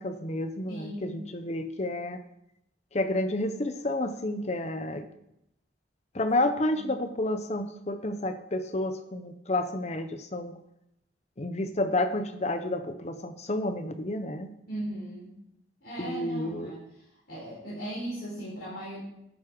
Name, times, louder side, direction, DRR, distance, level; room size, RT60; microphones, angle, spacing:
voice 1, 0.0-2.2 2.9-5.1 6.1-10.6 11.4-14.5 16.0-16.8, left 1 dB, 35° left, 9 dB, 0.8 m, -30 dB
voice 2, 0.7-1.2 6.6-6.8 14.7-15.3 15.8-16.8 17.3-19.0, right 1 dB, 55° left, -9 dB, 4.7 m, -37 dB
11.5 x 7.1 x 5.0 m, 0.81 s
head